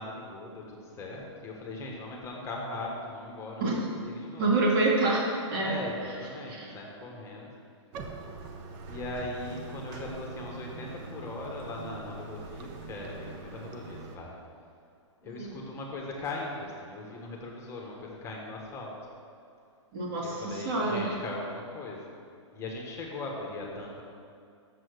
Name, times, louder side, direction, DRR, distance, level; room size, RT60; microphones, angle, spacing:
voice 1, 0.0-3.7 4.0-4.5 5.6-7.5 8.8-14.4 15.2-18.9 20.1-22.1 22.5-24.0, left 2 dB, 15° left, -1 dB, 1.2 m, -39 dB
voice 2, 4.4-5.7 6.5-6.7 15.2-15.6 19.9-21.0, right 2 dB, 45° right, -3 dB, 2.4 m, -27 dB
Bathtub (filling or washing), 7.9-14.2, right 3 dB, 30° right, 0.7 m, -43 dB
7.0 x 6.2 x 6.5 m, 2.4 s
hypercardioid pair, 140°, 16 cm